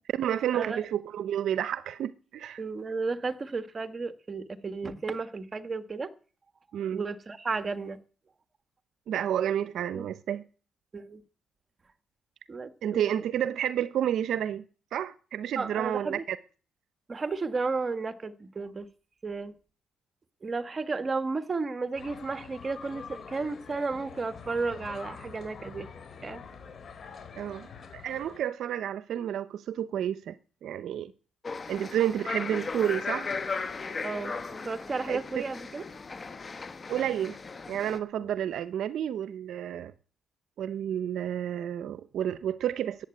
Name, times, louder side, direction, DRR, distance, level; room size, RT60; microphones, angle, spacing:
voice 1, 0.1-2.6 6.7-7.0 9.1-10.4 12.8-14.6 14.9-16.4 27.3-27.7 27.9-30.4 30.6-31.1 31.7-33.3 35.1-35.5 36.9-37.4 37.7-39.9 40.6-43.0, right 10 dB, 70° right, 0.7 m, -30 dB
voice 2, 2.6-6.1 6.9-8.0 9.9-10.1 10.9-11.2 12.5-13.2 15.5-16.2 17.1-18.9 19.2-19.5 20.4-25.9 26.2-26.4 34.0-35.8 38.2-38.3, right 4 dB, 30° right, 1.5 m, -33 dB
sound 1, 21.9-28.4, left 5 dB, 50° left, 3.8 m, -45 dB
sound 2, 31.4-38.0, left 4 dB, 35° left, 1.4 m, -37 dB
14.5 x 8.9 x 9.0 m
cardioid pair, 90°, 0 cm